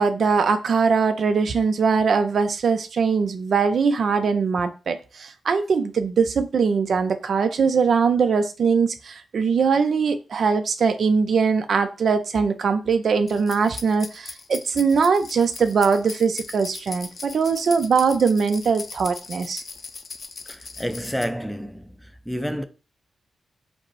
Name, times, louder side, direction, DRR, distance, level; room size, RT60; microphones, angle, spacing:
voice 1, 0.0-19.6, right 5 dB, 65° right, 0.4 m, -21 dB
sound 1, 13.3-21.2, left 4 dB, 50° left, 0.5 m, -39 dB
voice 2, 20.5-21.8 22.3-22.6, equal, ahead, 0.5 m, -29 dB
5.0 x 2.0 x 4.6 m
cardioid pair, 85°, 0 cm